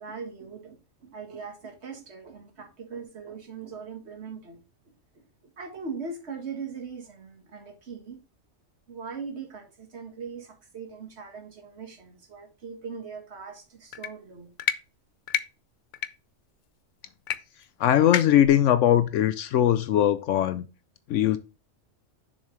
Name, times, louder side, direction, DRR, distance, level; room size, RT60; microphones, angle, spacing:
voice 1, 0.0-4.6 5.6-8.2 8.9-14.5, right 5 dB, 60° right, 1.9 m, -40 dB
sound 1, 13.9-14.1 14.6-14.8 15.3-15.4 15.9-16.1 17.3-17.4 17.6-17.7 18.1-18.5, left 9 dB, 55° left, 0.5 m, -28 dB
voice 2, 17.8-20.7 21.1-21.4, left 11 dB, 80° left, 0.9 m, -21 dB
7.1 x 6.4 x 3.2 m
omnidirectional pair, 1.3 m